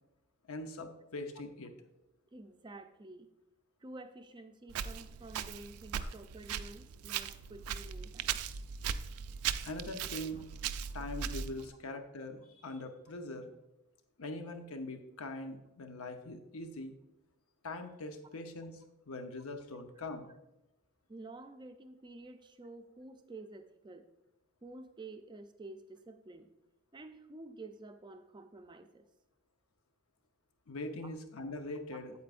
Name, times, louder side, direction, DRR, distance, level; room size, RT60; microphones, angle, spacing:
voice 1, 0.5-1.7 6.0-6.1 9.6-10.4 10.9-13.5 14.2-16.9 17.6-18.7 19.1-20.3 30.7-32.1, left 2 dB, 75° left, 6 dB, 0.8 m, -42 dB
voice 2, 2.3-3.3 3.8-8.4 21.1-24.1 24.6-26.5 26.9-29.1 31.9-32.0, right 2 dB, 20° right, 8 dB, 0.4 m, -50 dB
Walk footsteps, 4.7-11.7, right 8 dB, 85° right, 0.4 m, -39 dB
8.3 x 8.1 x 2.5 m, 0.93 s
head